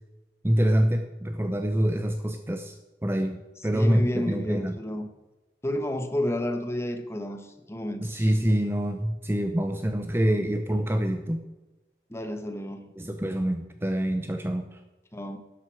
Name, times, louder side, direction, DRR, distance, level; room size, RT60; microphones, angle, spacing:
voice 1, 0.4-2.8 3.0-4.8 8.0-11.5 13.0-14.8, equal, 15° right, 7 dB, 0.7 m, -26 dB
voice 2, 3.7-5.1 5.6-8.3 12.1-12.9 15.1-15.4, left 1 dB, 15° left, 6 dB, 1.2 m, -31 dB
12.5 x 11.0 x 4.7 m, 1.1 s
head